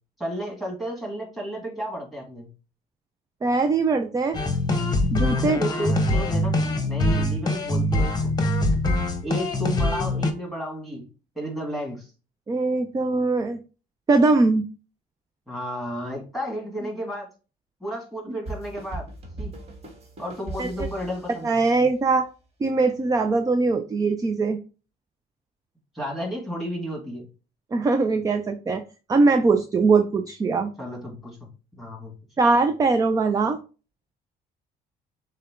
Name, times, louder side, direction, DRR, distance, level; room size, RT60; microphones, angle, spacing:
voice 1, 0.2-2.5 5.4-6.6 6.9-8.3 9.2-11.1 11.4-12.1 15.5-17.3 17.8-19.1 19.4-19.5 20.2-21.6 25.9-27.3 30.8-32.1, equal, ahead, -1 dB, 2.0 m, -32 dB
voice 2, 3.4-4.4 5.1-5.6 12.5-13.6 14.1-14.6 20.6-20.7 21.4-22.3 22.6-24.6 27.7-28.8 29.1-30.7 32.4-33.6, right 3 dB, 20° right, 7 dB, 0.4 m, -21 dB
sound 1, 4.3-10.3, left 1 dB, 25° left, 0.9 m, -23 dB
sound 2, 18.5-22.0, right 2 dB, 40° right, 1.6 m, -38 dB
6.5 x 2.2 x 3.7 m, 0.34 s
cardioid pair, 110°, 17 cm